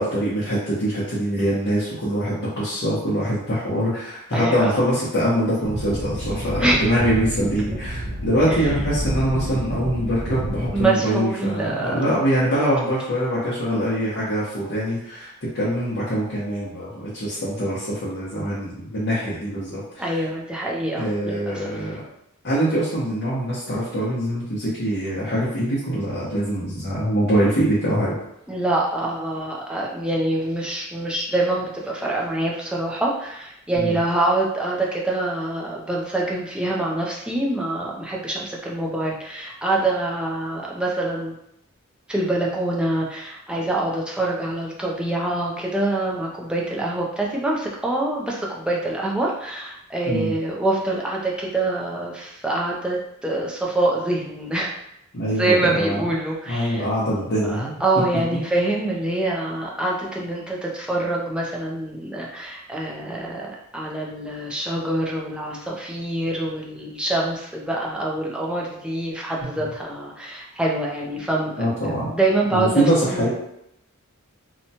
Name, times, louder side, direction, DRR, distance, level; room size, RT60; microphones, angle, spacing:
voice 1, 0.0-20.2 20.9-22.0 22.4-28.2 33.7-34.0 50.1-50.3 55.1-56.0 56.5-57.7 58.1-58.4 71.6-72.1 72.5-73.3, equal, 50° left, -9 dB, 0.8 m, -23 dB
voice 2, 4.3-4.7 6.6-6.8 7.6-7.8 8.5-8.6 10.7-12.0 20.0-21.8 28.5-41.3 42.1-54.7 55.4-56.8 57.5-73.3, right 2 dB, 5° right, -3 dB, 0.4 m, -25 dB
sound 1, 5.6-10.8, right 1 dB, 80° right, 0.6 m, -29 dB
2.9 x 2.2 x 2.7 m, 0.78 s
head